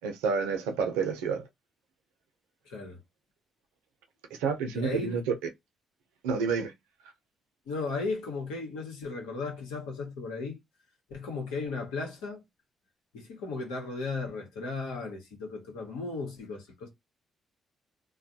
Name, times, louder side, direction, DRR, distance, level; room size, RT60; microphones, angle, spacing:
voice 1, 0.0-1.4 4.3-5.3 6.2-6.7, right 5 dB, 85° right, 0.6 m, -29 dB
voice 2, 2.7-3.0 4.7-5.2 7.7-10.6 11.1-12.4 13.1-16.9, left 3 dB, 85° left, 1.0 m, -35 dB
2.3 x 2.2 x 2.7 m
hypercardioid pair, 50°, 0 cm